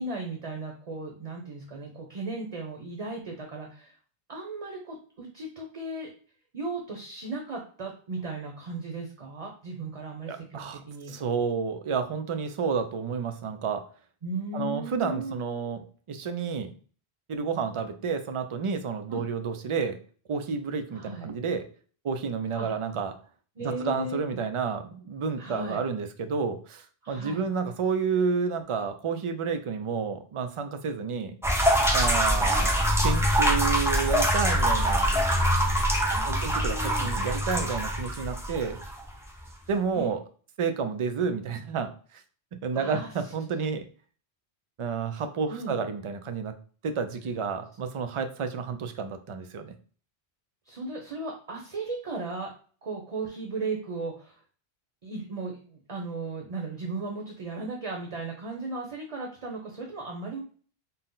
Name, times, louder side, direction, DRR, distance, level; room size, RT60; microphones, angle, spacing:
voice 1, 0.0-3.9 4.3-6.1 6.5-11.2 14.2-15.4 19.1-19.2 20.9-21.3 22.5-22.7 23.6-24.2 25.4-25.8 27.0-27.4 32.2-32.7 36.1-37.1 39.9-40.1 42.7-43.1 45.5-45.8 50.7-52.5 52.8-54.4 55.0-60.4, right 3 dB, 40° right, 1 dB, 0.7 m, -36 dB
voice 2, 10.3-10.8 11.1-13.9 14.5-16.7 17.3-20.0 20.3-21.7 22.0-23.2 23.6-31.3 31.9-35.1 36.2-38.8 39.7-40.2 40.6-42.2 42.5-43.8 44.8-46.5 46.8-49.7, right 5 dB, 60° right, 8 dB, 0.3 m, -30 dB
sound 1, 31.4-39.0, equal, 5° right, 0.5 m, -24 dB
4.1 x 2.0 x 3.8 m, 0.43 s
omnidirectional pair, 1.1 m